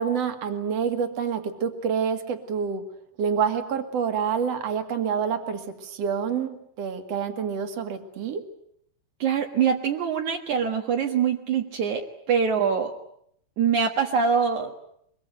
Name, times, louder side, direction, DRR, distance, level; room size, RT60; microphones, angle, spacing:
voice 1, 0.0-2.9 3.2-8.4, right 7 dB, 50° right, 7 dB, 2.1 m, -27 dB
voice 2, 9.2-12.0 12.3-12.9 13.6-14.7, right 6 dB, 70° right, 2 dB, 1.8 m, -24 dB
24.0 x 23.5 x 9.4 m, 0.71 s
omnidirectional pair, 6.0 m